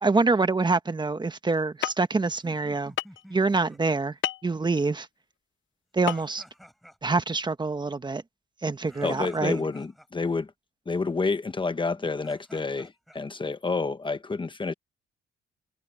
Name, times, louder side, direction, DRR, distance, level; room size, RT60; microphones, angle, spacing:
voice 1, 0.0-2.9 3.3-4.1 4.4-5.1 5.9-6.4 7.0-8.2 8.6-9.6, right 3 dB, 20° right, 1.4 m, -25 dB
sound 1, 1.8-1.9 3.0-3.2 4.2-4.5 6.1-6.2 6.5-6.6, left 13 dB, 75° left, 0.9 m, -28 dB
sound 2, 2.3-3.8 6.0-7.2 8.8-10.1 11.9-13.2, equal, ahead, 5.4 m, -51 dB
voice 2, 9.0-10.5 10.9-14.7, left 4 dB, 25° left, 1.1 m, -29 dB
cardioid pair, 90°, 20 cm